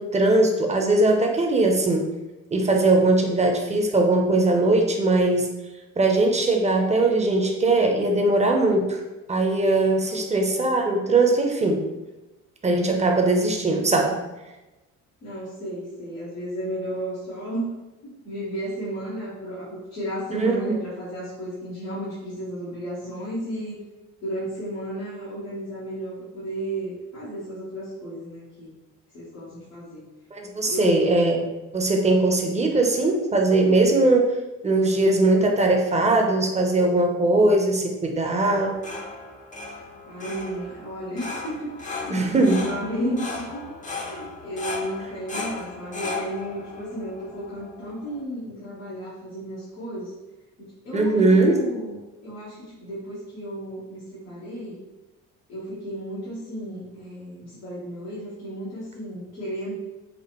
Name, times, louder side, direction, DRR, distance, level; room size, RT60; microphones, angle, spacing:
voice 1, 0.0-2.0 2.5-5.5 6.0-9.0 9.3-11.8 12.6-14.2 20.3-20.7 30.3-34.4 34.6-38.7 42.1-42.6 50.9-51.6, right 2 dB, 15° right, 2 dB, 0.7 m, -20 dB
voice 2, 15.2-17.7 18.0-23.8 24.2-28.7 29.1-30.1 30.6-31.0 40.1-50.1 50.6-54.8 55.5-59.7, right 1 dB, 90° left, -12 dB, 1.3 m, -33 dB
sound 1, 38.5-48.2, left 3 dB, 20° left, 0.6 m, -36 dB
4.3 x 2.4 x 3.0 m, 1.1 s
hypercardioid pair, 50°, 41 cm